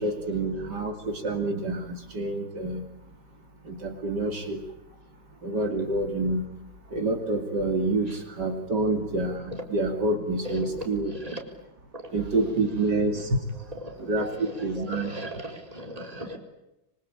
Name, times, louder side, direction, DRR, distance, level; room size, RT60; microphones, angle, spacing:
voice 1, 0.0-2.8 3.6-4.6 5.4-6.4 6.9-11.1 12.1-13.3 14.0-15.1, right 2 dB, 65° right, 3.3 m, -27 dB
voice 2, 10.4-11.6 11.9-12.3 12.9-13.2 13.5-16.4, equal, 20° right, 4.4 m, -38 dB
25.5 x 25.0 x 8.7 m
omnidirectional pair, 1.9 m